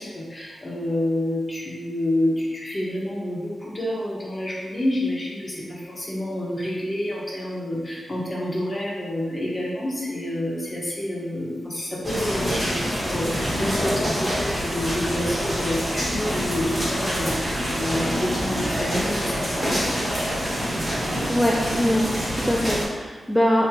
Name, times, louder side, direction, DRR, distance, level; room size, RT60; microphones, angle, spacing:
voice 1, 0.0-20.0, left 1 dB, 30° left, -5 dB, 1.0 m, -28 dB
sound 1, 12.0-22.8, equal, 15° right, 1.3 m, -26 dB
voice 2, 21.2-23.7, equal, 5° left, -2 dB, 0.3 m, -22 dB
3.5 x 2.8 x 2.9 m, 1.4 s
cardioid pair, 75°, 0 cm